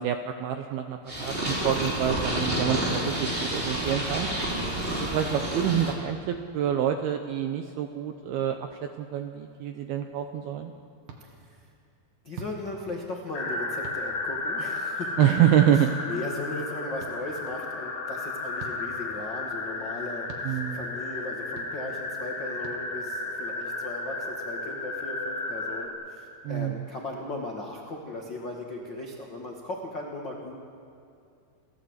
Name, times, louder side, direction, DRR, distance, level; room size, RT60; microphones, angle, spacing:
voice 1, 0.0-4.3 4.9-10.7 15.2-15.9 20.4-20.8 26.4-26.9, right 10 dB, 80° right, 6 dB, 2.2 m, -27 dB
Purr, 1.1-5.9, right 1 dB, 15° right, 2.9 m, -29 dB
sound 1, 11.1-11.2 12.3-12.6 13.8-14.0 15.4-15.5 17.0-17.1 18.6-18.8 20.3-20.5 21.6-21.7 22.6-22.8, right 6 dB, 60° right, 3.1 m, -42 dB
voice 2, 11.2-11.6 12.2-15.3 15.7-30.6, left 2 dB, 90° left, -1 dB, 1.0 m, -37 dB
sound 2, 13.3-25.9, left 3 dB, 55° left, 3.5 m, -33 dB
29.5 x 14.0 x 8.1 m, 2.6 s
omnidirectional pair, 5.5 m